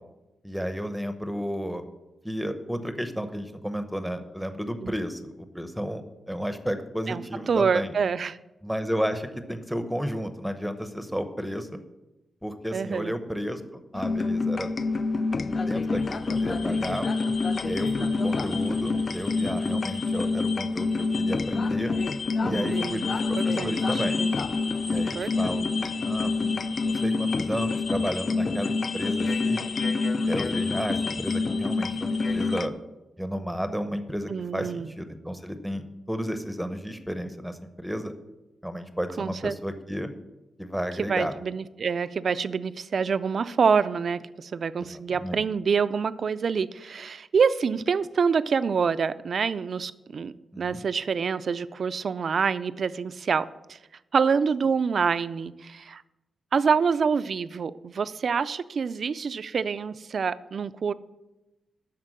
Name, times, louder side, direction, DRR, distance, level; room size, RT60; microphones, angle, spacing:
voice 1, 0.4-1.8 2.2-6.0 6.3-8.0 8.6-11.7 12.4-14.7 15.6-17.1 17.6-21.9 22.4-24.2 24.8-29.7 30.2-32.7 33.2-38.1 38.6-40.1 40.6-41.3 44.8-45.4 50.5-50.8, equal, ahead, 9 dB, 0.7 m, -32 dB
voice 2, 7.5-8.4 12.7-13.1 22.4-23.0 23.3-24.0 24.9-25.7 34.3-34.9 39.2-39.6 41.0-53.8 54.1-56.0 56.5-60.9, right 6 dB, 50° right, 14 dB, 0.4 m, -26 dB
sound 1, 13.9-32.7, left 3 dB, 40° left, 0.4 m, -27 dB
12.5 x 4.4 x 7.7 m, 1.0 s
wide cardioid pair, 140°, 0 cm